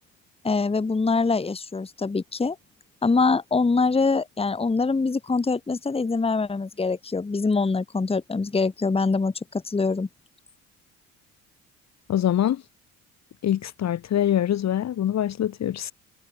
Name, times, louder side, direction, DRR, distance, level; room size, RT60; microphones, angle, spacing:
voice 1, 0.4-2.6 3.0-10.1, left 4 dB, 15° left, 1.3 m, -24 dB
voice 2, 12.1-12.6 13.4-15.9, left 11 dB, 45° left, 1.3 m, -24 dB
hypercardioid pair, 55°, 38 cm